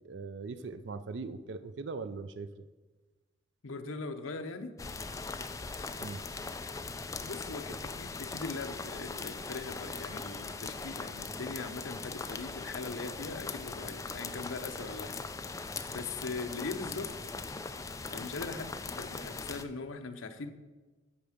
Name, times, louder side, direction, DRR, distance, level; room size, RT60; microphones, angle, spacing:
voice 1, 0.0-2.7 6.0-6.2, right 4 dB, 60° right, 12 dB, 0.4 m, -40 dB
voice 2, 3.6-4.7 7.2-15.2 15.5-17.1 18.1-20.5, left 3 dB, 80° left, 7 dB, 0.7 m, -40 dB
sound 1, 4.8-19.6, left 4 dB, 15° left, 0.3 m, -40 dB
8.7 x 4.7 x 6.5 m, 1.2 s
head